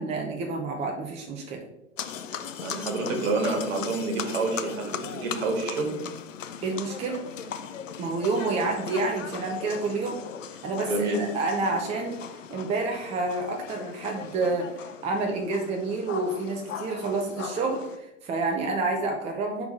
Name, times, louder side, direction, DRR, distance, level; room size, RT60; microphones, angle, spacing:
voice 1, 0.0-1.6 6.6-7.2 8.0-10.2 10.6-19.7, right 3 dB, 15° right, 2 dB, 0.6 m, -29 dB
sound 1, 2.0-18.0, left 7 dB, 75° left, 0.6 m, -39 dB
voice 2, 2.6-5.9 10.9-11.2, right 2 dB, 55° right, 2 dB, 1.9 m, -28 dB
4.5 x 4.0 x 5.2 m, 0.90 s
figure-of-eight pair, 95°, 38 cm